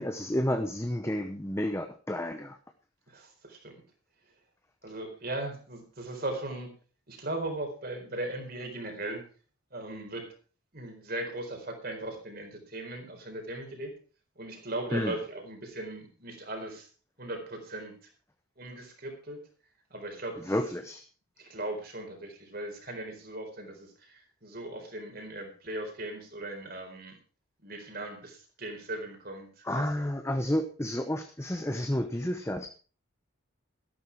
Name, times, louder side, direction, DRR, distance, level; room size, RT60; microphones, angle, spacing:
voice 1, 0.0-2.6 14.9-15.2 20.4-21.0 29.6-32.7, left 1 dB, 10° left, 7 dB, 0.7 m, -31 dB
voice 2, 3.1-3.7 4.8-6.7 7.1-9.2 9.7-10.3 10.7-13.9 14.4-16.9 17.2-18.1 18.6-19.4 19.9-20.5 21.4-27.1 27.6-30.0, right 1 dB, 45° right, 4 dB, 4.3 m, -38 dB
13.5 x 11.5 x 4.8 m, 0.37 s
head